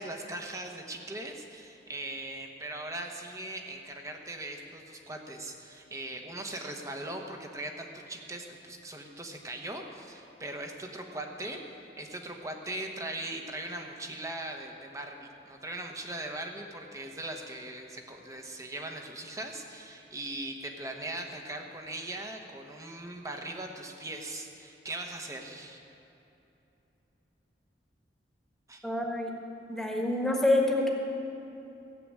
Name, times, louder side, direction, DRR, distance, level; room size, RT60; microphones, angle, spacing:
voice 1, 0.0-25.8 28.7-28.8, right 1 dB, 20° right, 3 dB, 1.1 m, -40 dB
voice 2, 28.8-29.3 29.7-30.9, left 1 dB, ahead, 0 dB, 1.5 m, -26 dB
15.0 x 7.7 x 8.7 m, 3.0 s
head